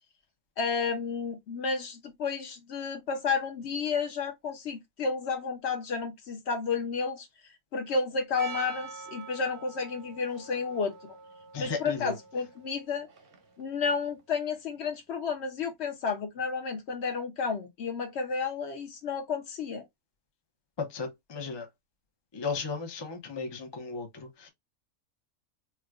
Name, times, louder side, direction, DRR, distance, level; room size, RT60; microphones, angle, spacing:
voice 1, 0.6-7.3 7.7-10.9 11.6-13.1 13.6-19.9, left 5 dB, 60° left, 0.9 m, -31 dB
Percussion, 8.4-13.6, right 5 dB, 50° right, 0.7 m, -45 dB
voice 2, 11.5-12.1 20.8-21.7 22.3-24.5, left 4 dB, 35° left, 0.4 m, -35 dB
4.4 x 2.2 x 2.3 m
omnidirectional pair, 1.5 m